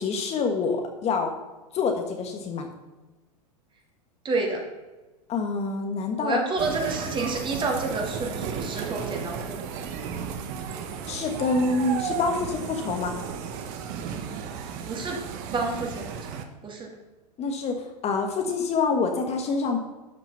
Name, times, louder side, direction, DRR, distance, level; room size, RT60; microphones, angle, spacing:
voice 1, 0.0-1.3 1.7-2.7 5.3-6.4 11.1-13.1 17.4-17.7 18.0-19.8, left 4 dB, 30° left, 4 dB, 1.5 m, -26 dB
voice 2, 4.2-4.6 6.2-9.9 14.9-15.2 15.5-16.1 16.6-16.9, right 3 dB, 25° right, 1 dB, 2.6 m, -29 dB
sound 1, 6.6-16.4, right 7 dB, 50° right, 1.3 m, -34 dB
12.0 x 6.0 x 5.6 m, 1.2 s
hypercardioid pair, 105°, 21 cm